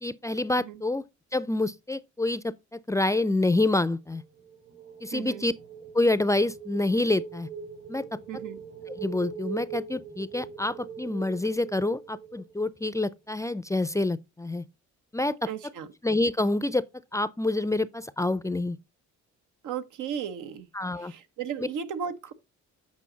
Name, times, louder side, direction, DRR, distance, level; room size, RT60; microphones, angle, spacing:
voice 1, 0.0-1.0 1.3-4.2 5.0-5.5 5.9-7.5 7.9-8.0 8.9-14.6 15.1-15.5 16.0-16.8 17.1-18.8 20.7-21.1 21.6-21.7, left 2 dB, 10° left, 0.4 m, -27 dB
sound 1, 4.1-13.0, right 6 dB, 60° right, 2.0 m, -42 dB
voice 2, 5.1-5.4 8.3-8.6 15.5-15.9 19.6-20.7 21.0-22.3, right 8 dB, 85° right, 1.0 m, -35 dB
8.5 x 5.2 x 3.9 m
cardioid pair, 90°, 30 cm